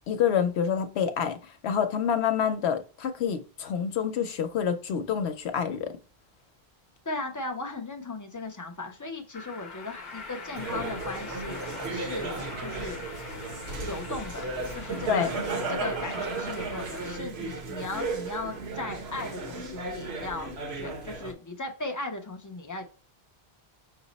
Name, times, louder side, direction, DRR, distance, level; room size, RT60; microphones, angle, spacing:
voice 1, 0.1-1.4 1.6-5.9 15.1-15.3, left 8 dB, 80° left, 0.9 m, -27 dB
voice 2, 7.1-13.5 13.8-14.5 14.7-15.3 15.7-23.0, left 2 dB, 25° left, 0.4 m, -37 dB
sound 1, 9.3-17.2, left 4 dB, 50° left, 0.7 m, -43 dB
sound 2, 10.5-21.3, right 3 dB, 80° right, 1.1 m, -34 dB
5.7 x 2.0 x 3.9 m
omnidirectional pair, 1.1 m